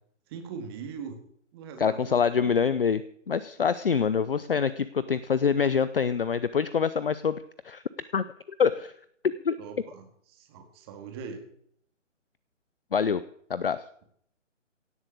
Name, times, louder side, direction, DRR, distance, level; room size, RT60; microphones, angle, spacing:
voice 1, 0.3-1.2 1.5-2.5 9.6-11.4, right 6 dB, 20° right, 5 dB, 2.2 m, -41 dB
voice 2, 1.8-3.0 3.3-7.4 7.6-7.8 8.1-8.2 8.6-8.9 9.4-9.6 12.9-13.2 13.5-13.8, left 6 dB, 45° left, 16 dB, 0.7 m, -25 dB
17.0 x 7.8 x 8.6 m, 0.66 s
figure-of-eight pair, 140°, 38 cm